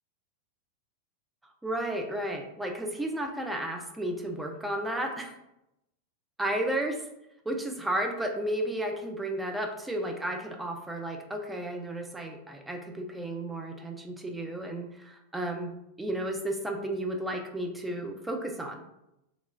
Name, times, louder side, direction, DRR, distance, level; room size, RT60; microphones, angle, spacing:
voice 1, 1.6-5.3 6.4-7.0 7.5-18.8, right 1 dB, 5° right, 3 dB, 0.3 m, -33 dB
2.9 x 2.1 x 2.5 m, 0.86 s
figure-of-eight pair, 90°, 0 cm